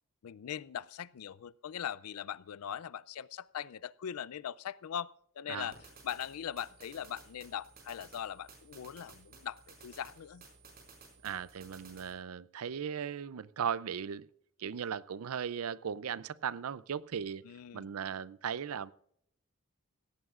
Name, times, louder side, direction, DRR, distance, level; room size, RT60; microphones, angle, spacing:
voice 1, 0.2-5.8 6.0-10.4 17.4-17.9, left 9 dB, 90° left, 21 dB, 0.4 m, -41 dB
sound 1, 5.7-12.1, right 4 dB, 45° right, 5.0 m, -56 dB
voice 2, 11.2-14.3 14.6-17.4 17.7-18.9, right 7 dB, 85° right, 19 dB, 0.5 m, -37 dB
17.5 x 16.0 x 2.5 m, 0.70 s
head